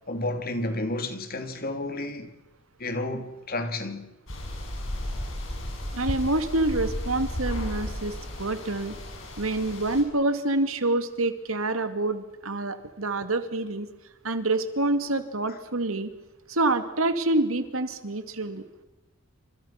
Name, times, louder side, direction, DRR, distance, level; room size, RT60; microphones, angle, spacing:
voice 1, 0.1-2.4 2.8-4.1, left 2 dB, 45° left, 2.9 m, -31 dB
sound 1, 4.3-10.0, left 1 dB, 65° left, 6.7 m, -34 dB
voice 2, 5.9-8.9 9.4-13.9 14.2-16.1 16.5-18.6, right 2 dB, 90° right, 2.4 m, -27 dB
28.5 x 27.0 x 5.9 m
head